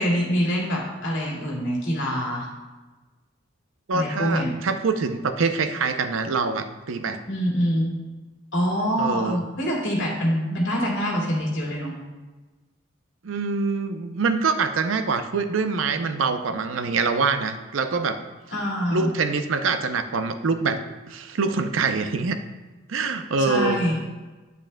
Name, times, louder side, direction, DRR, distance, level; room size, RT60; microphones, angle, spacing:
voice 1, 0.0-2.5 3.9-4.5 7.3-7.9 8.5-11.9 18.5-19.1 23.4-24.0, equal, 65° left, -3 dB, 2.2 m, -25 dB
voice 2, 3.9-7.2 9.0-9.4 13.2-18.2 18.9-20.8 21.1-22.4 22.9-23.8, right 4 dB, 85° right, 9 dB, 0.5 m, -25 dB
8.7 x 8.1 x 2.2 m, 1.2 s
head